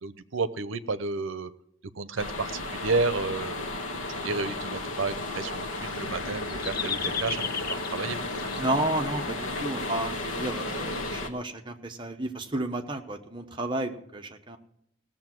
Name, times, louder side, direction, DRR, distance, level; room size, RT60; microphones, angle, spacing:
voice 1, 0.0-1.5 1.9-3.7 4.2-7.5 7.9-8.2, right 3 dB, 80° right, 13 dB, 0.7 m, -31 dB
sound 1, 2.2-11.3, left 2 dB, 90° left, 1.4 m, -33 dB
sound 2, 5.7-8.6 9.8-9.9 10.6-11.1, left 7 dB, 50° left, 0.8 m, -35 dB
voice 2, 8.6-14.6, right 1 dB, 25° right, 4 dB, 1.0 m, -32 dB
17.0 x 7.2 x 6.1 m, 0.76 s
head